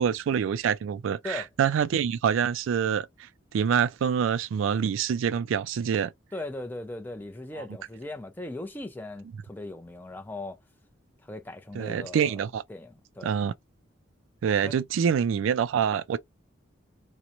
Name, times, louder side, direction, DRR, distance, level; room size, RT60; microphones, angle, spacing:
voice 1, 0.0-6.1 7.6-7.7 11.7-12.6 13.2-13.5 14.4-16.2, right 7 dB, 80° right, 0.3 m, -26 dB
voice 2, 6.3-10.6 11.2-13.3 14.6-14.8, left 2 dB, 10° left, 0.4 m, -39 dB
2.9 x 2.1 x 2.4 m
head